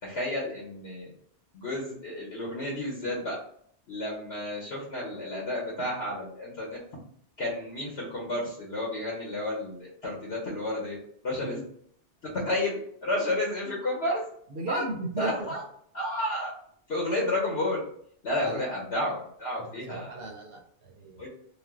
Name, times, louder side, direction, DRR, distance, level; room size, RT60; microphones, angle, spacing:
voice 1, 0.0-1.1 1.5-3.4 3.9-6.8 7.4-11.0 11.2-11.6 12.2-14.2 14.7-14.8 15.2-15.6 15.9-16.5 16.9-17.8 18.2-20.2 21.2-21.3, left 1 dB, 65° left, -3 dB, 1.0 m, -31 dB
voice 2, 14.5-15.5 18.4-18.6 19.6-21.3, right 2 dB, 65° right, 3 dB, 0.7 m, -36 dB
2.4 x 2.0 x 3.4 m, 0.64 s
omnidirectional pair, 1.2 m